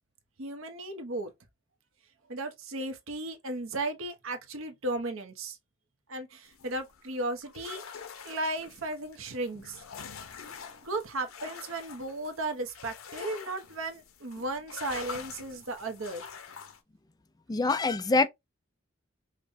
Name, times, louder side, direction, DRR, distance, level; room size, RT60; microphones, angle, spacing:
voice 1, 0.4-1.3 2.3-5.6 6.1-7.8 8.2-9.8 10.8-16.3, right 2 dB, 80° right, 0.8 m, -35 dB
sound 1, 6.5-16.8, left 6 dB, 90° left, 0.7 m, -45 dB
voice 2, 17.5-18.3, left 3 dB, 20° left, 0.3 m, -24 dB
5.2 x 2.1 x 2.6 m
head